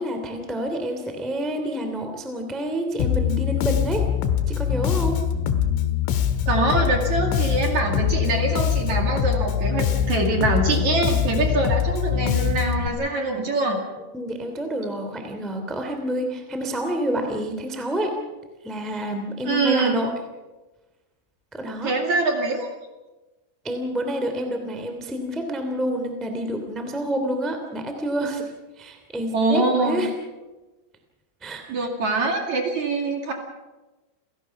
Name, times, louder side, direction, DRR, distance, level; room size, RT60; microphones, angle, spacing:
voice 1, 0.0-4.1 4.5-5.2 14.1-18.2 18.6-20.1 21.5-21.9 23.6-28.4 28.8-30.1 31.4-31.6, equal, ahead, 5 dB, 0.9 m, -28 dB
Bass guitar, 3.0-12.9, left 9 dB, 80° left, 3.9 m, -23 dB
voice 2, 6.5-13.8 19.4-20.0 21.8-22.7 29.3-30.1 31.7-33.3, right 3 dB, 45° right, 2 dB, 2.8 m, -24 dB
29.0 x 17.5 x 6.0 m, 1.1 s
omnidirectional pair, 5.8 m